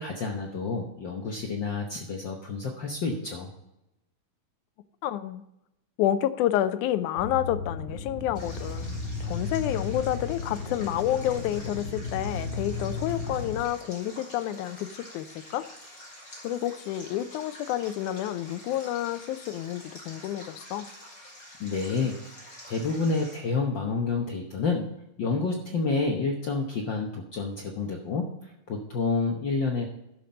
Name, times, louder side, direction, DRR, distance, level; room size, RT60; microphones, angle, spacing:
voice 1, 0.0-3.5 21.6-22.2 22.7-24.9 25.2-29.9, left 4 dB, 70° left, 1 dB, 1.1 m, -29 dB
voice 2, 5.0-5.4 6.0-15.6 16.4-20.9, left 12 dB, 85° left, 13 dB, 2.1 m, -29 dB
sound 1, 7.2-13.6, left 4 dB, 45° left, 2.3 m, -34 dB
Stream, 8.4-23.4, left 1 dB, 25° left, 4.2 m, -47 dB
12.5 x 5.9 x 5.2 m, 0.88 s
omnidirectional pair, 3.4 m